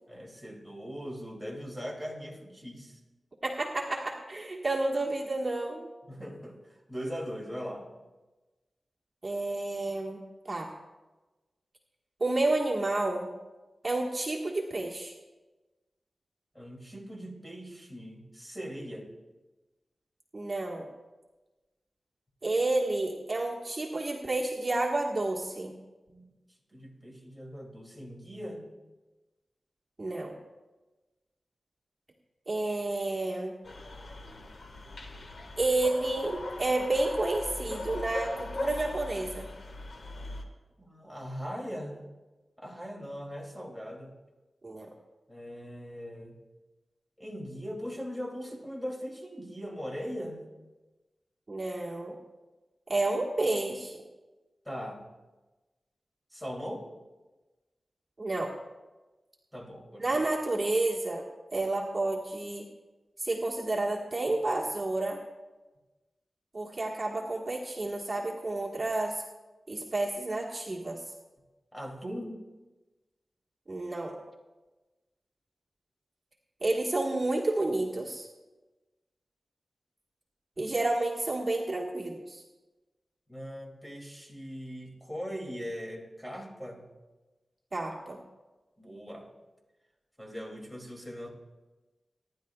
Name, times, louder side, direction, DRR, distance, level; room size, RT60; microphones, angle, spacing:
voice 1, 0.1-3.0 6.1-7.9 16.5-19.1 26.1-26.3 26.7-28.7 40.8-42.1 42.6-44.2 45.3-46.4 47.2-50.5 54.6-55.0 56.3-56.9 59.5-60.1 71.7-72.4 83.3-86.8 88.8-89.3 90.2-91.3, equal, 5° left, 0 dB, 2.7 m, -40 dB
voice 2, 3.4-5.9 9.2-10.2 10.5-10.7 12.2-13.3 13.8-15.1 20.3-20.9 22.4-25.7 30.0-30.3 32.5-33.5 35.6-39.5 44.6-44.9 51.5-52.2 52.9-54.0 58.2-58.5 60.0-61.2 61.5-62.7 63.2-65.2 66.5-69.2 69.7-71.0 73.7-74.1 76.6-78.3 80.6-82.4 87.7-88.2, right 2 dB, 35° right, -2 dB, 1.5 m, -30 dB
sound 1, 33.6-40.4, left 2 dB, 65° left, 1.7 m, -39 dB
24.5 x 11.0 x 2.4 m, 1.2 s
wide cardioid pair, 75°, 0 cm